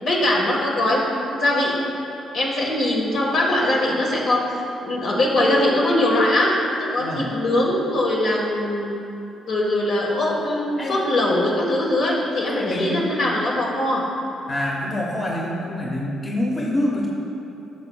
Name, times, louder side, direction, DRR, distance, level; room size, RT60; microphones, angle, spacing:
voice 1, 0.0-1.7 2.3-4.4 4.8-8.9 9.5-14.0, left 1 dB, 60° left, -3 dB, 1.6 m, -21 dB
voice 2, 12.5-13.1 14.5-17.1, left 1 dB, 30° left, -3 dB, 1.0 m, -26 dB
11.5 x 6.9 x 2.3 m, 3.0 s
cardioid pair, 90°, 0 cm